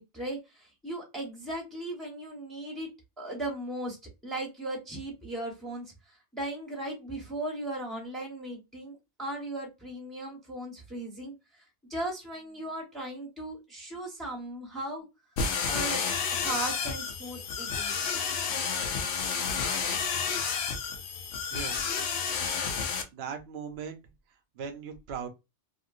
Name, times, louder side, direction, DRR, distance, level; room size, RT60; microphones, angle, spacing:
voice 1, 0.0-2.9 3.2-4.0 4.2-5.9 6.3-11.3 11.9-15.1 15.7-16.0 16.4-17.9, right 1 dB, ahead, 1.0 m, -37 dB
sound 1, 15.4-23.0, left 6 dB, 70° left, 0.9 m, -30 dB
voice 2, 21.5-22.0 22.4-22.6 23.1-24.0 24.5-25.3, right 6 dB, 70° right, 0.9 m, -39 dB
3.0 x 2.6 x 2.5 m
omnidirectional pair, 1.2 m